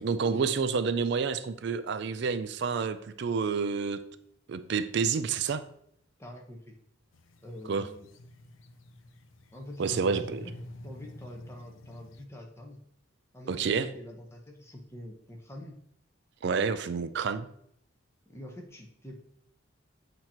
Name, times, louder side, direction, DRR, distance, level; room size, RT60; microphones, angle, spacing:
voice 1, 0.0-4.0 4.5-5.6 7.7-7.9 9.8-10.4 13.5-13.9 16.4-17.5, right 5 dB, 60° right, 12 dB, 0.4 m, -29 dB
voice 2, 6.2-6.8 7.4-8.1 9.5-10.5 10.8-12.8 13.3-15.8 16.8-16.9 18.3-19.2, left 1 dB, 15° left, 1 dB, 1.0 m, -46 dB
sound 1, 7.1-12.3, left 1 dB, 85° left, 0.6 m, -47 dB
7.8 x 3.0 x 4.3 m, 0.69 s
head